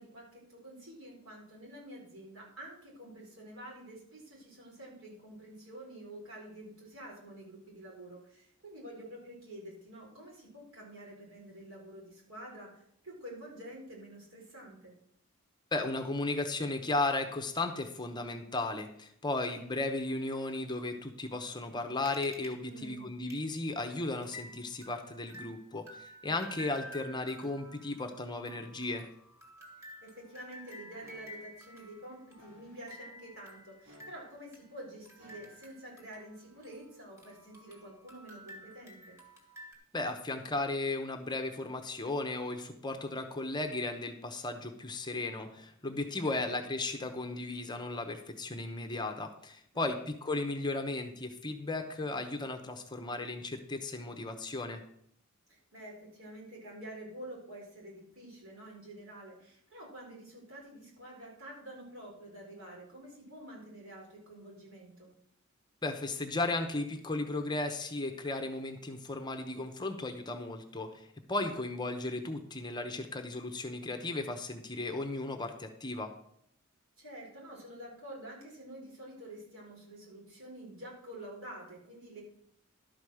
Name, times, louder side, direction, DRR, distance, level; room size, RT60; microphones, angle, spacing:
voice 1, 0.0-12.8 13.0-14.9 22.6-23.1 30.0-39.2 46.2-46.6 49.7-50.0 55.5-65.1 71.4-71.6 77.0-82.2, right 1 dB, 80° right, -2 dB, 4.3 m, -48 dB
voice 2, 15.7-29.1 39.9-54.8 65.8-76.1, left 2 dB, 20° left, 6 dB, 0.9 m, -35 dB
sound 1, 22.1-22.5 22.8-22.9 23.3-23.4 23.8-23.9 24.2-36.9 37.2-39.8, equal, 15° right, 2.0 m, -52 dB
sound 2, 31.0-31.5 32.4-32.9 33.8-34.5 35.2-35.8 36.5-36.7, equal, 60° right, 3.8 m, -59 dB
12.0 x 5.2 x 6.3 m, 0.71 s
head